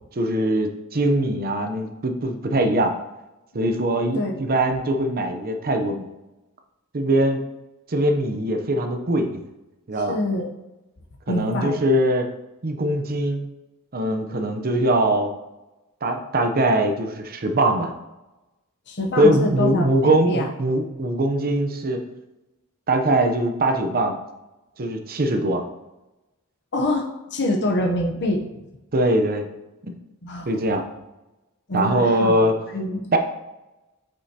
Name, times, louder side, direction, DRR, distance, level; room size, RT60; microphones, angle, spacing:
voice 1, 0.1-2.9 3.5-6.1 6.9-7.4 7.9-9.4 9.9-10.2 11.3-12.3 12.6-13.5 13.9-15.3 16.0-17.9 19.2-22.0 22.9-24.2 24.8-25.6 28.9-29.5 29.8-29.9 30.5-30.9 31.7-32.6 33.1-33.2, right 1 dB, 40° right, 6 dB, 0.7 m, -21 dB
voice 2, 10.1-10.5 11.3-11.8 18.9-20.5 26.7-28.5 30.2-30.5 31.7-32.4 32.7-33.1, left 1 dB, 50° left, 1 dB, 0.9 m, -25 dB
8.2 x 5.4 x 2.9 m, 1.0 s
head